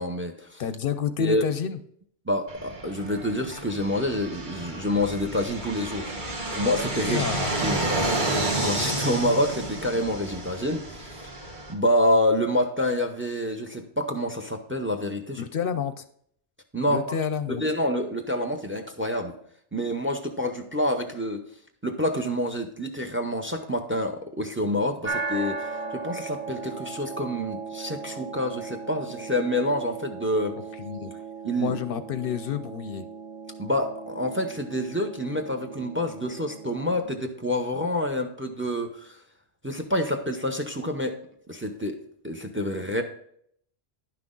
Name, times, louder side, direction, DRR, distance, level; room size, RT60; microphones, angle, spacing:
voice 1, 0.0-0.6 1.2-1.5 2.3-6.1 6.5-7.3 7.6-7.9 8.2-11.2 11.7-15.5 16.7-17.2 17.5-19.3 19.7-21.4 21.8-30.6 31.4-31.8 33.6-39.2 39.6-41.2 41.5-42.0 42.2-43.0, left 1 dB, 15° right, 6 dB, 0.7 m, -27 dB
voice 2, 0.6-1.8 7.0-7.6 15.4-16.0 16.9-17.6 30.8-31.1 31.6-33.1, left 8 dB, 65° left, 11 dB, 0.7 m, -29 dB
Fixed-wing aircraft airplane, 2.5-11.7, right 2 dB, 50° right, 1.7 m, -30 dB
sound 1, 25.0-37.0, right 4 dB, 70° right, 1.5 m, -37 dB
10.5 x 6.0 x 3.8 m, 0.65 s
omnidirectional pair, 1.0 m